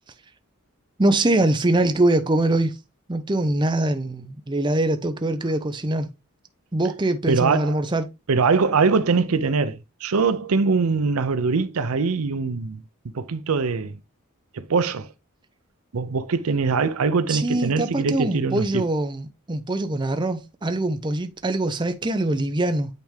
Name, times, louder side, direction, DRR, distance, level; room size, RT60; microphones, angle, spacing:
voice 1, 1.0-2.7 3.1-6.1 6.7-8.1 17.3-22.9, right 2 dB, 20° right, 0.6 m, -23 dB
voice 2, 7.3-7.8 8.3-12.8 13.1-13.9 14.5-15.1 15.9-18.8, right 4 dB, 80° right, 0.6 m, -22 dB
9.0 x 3.5 x 3.3 m
head